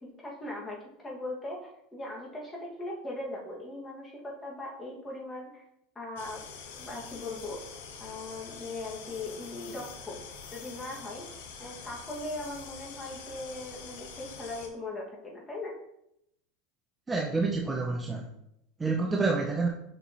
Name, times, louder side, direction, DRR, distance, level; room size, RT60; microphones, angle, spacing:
voice 1, 0.0-1.6 1.9-5.6 6.0-6.4 6.8-7.6 8.0-10.2 10.5-11.2 11.6-15.7, left 2 dB, 15° left, -3 dB, 2.1 m, -39 dB
sound 1, 6.2-14.7, left 6 dB, 80° left, 1.0 m, -45 dB
voice 2, 17.1-18.3 18.8-19.7, right 3 dB, 15° right, 0 dB, 0.7 m, -28 dB
6.6 x 5.8 x 3.1 m, 0.80 s
supercardioid pair, 120°, 0 cm